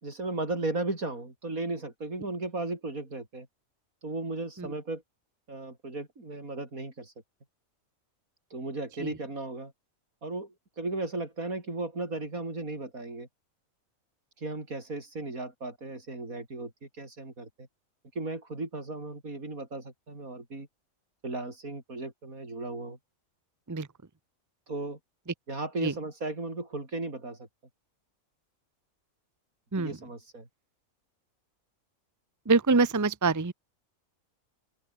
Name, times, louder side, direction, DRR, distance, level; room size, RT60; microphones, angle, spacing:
voice 1, 0.0-3.5 4.0-5.0 5.5-7.1 8.5-9.7 10.2-13.3 14.4-17.7 18.2-20.7 21.2-23.0 24.7-25.0 25.5-27.5 29.8-30.5, right 2 dB, 85° right, 5.7 m, -36 dB
voice 2, 32.5-33.5, right 4 dB, 15° right, 0.8 m, -24 dB
open air
omnidirectional pair, 1.4 m